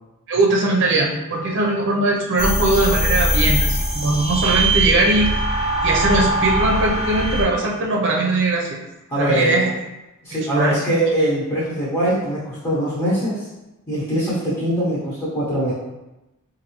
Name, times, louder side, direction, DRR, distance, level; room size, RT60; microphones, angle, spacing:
voice 1, 0.3-5.3 5.8-8.8 9.2-9.7 10.5-10.8, right 2 dB, 60° right, -1 dB, 0.6 m, -20 dB
sound 1, 2.4-7.4, right 1 dB, 65° left, 0.9 m, -21 dB
voice 2, 9.1-9.6 10.2-13.5 13.9-15.7, right 1 dB, 20° left, -9 dB, 1.0 m, -22 dB
4.1 x 2.6 x 3.0 m, 1.0 s
head